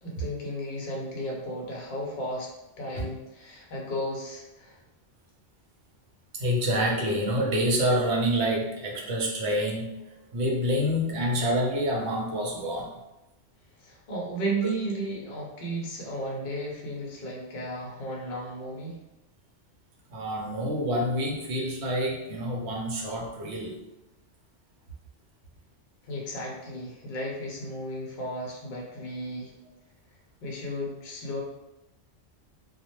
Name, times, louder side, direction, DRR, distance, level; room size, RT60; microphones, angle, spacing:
voice 1, 0.0-4.8 13.8-19.0 26.0-29.5 30.4-31.4, right 1 dB, 55° left, -2 dB, 0.6 m, -34 dB
voice 2, 6.3-12.9 20.1-23.8, equal, 65° right, -1 dB, 0.9 m, -27 dB
2.2 x 2.1 x 2.9 m, 0.95 s
omnidirectional pair, 1.3 m